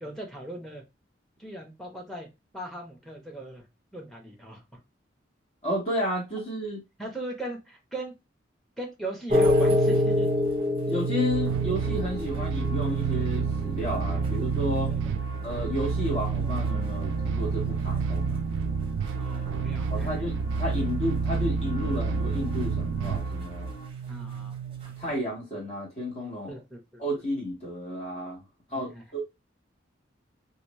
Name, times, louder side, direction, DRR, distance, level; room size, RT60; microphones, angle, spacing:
voice 1, 0.0-0.8 1.4-2.3 2.5-3.6 3.9-4.8 7.0-8.1 8.8-10.3 14.9-15.7 19.2-20.1 24.1-24.6 24.8-25.2 26.5-27.0 28.9-29.0, right 1 dB, ahead, 1.0 m, -39 dB
voice 2, 5.6-6.8 10.9-14.9 15.4-18.4 19.9-23.7 25.0-26.5 27.0-28.4 28.7-29.2, left 1 dB, 35° left, 1.7 m, -32 dB
sound 1, 9.3-25.2, right 1 dB, 30° right, 0.7 m, -30 dB
sound 2, 11.3-23.7, right 4 dB, 80° right, 0.3 m, -30 dB
sound 3, 11.8-23.9, right 1 dB, 50° left, 0.9 m, -47 dB
3.1 x 2.7 x 3.1 m
head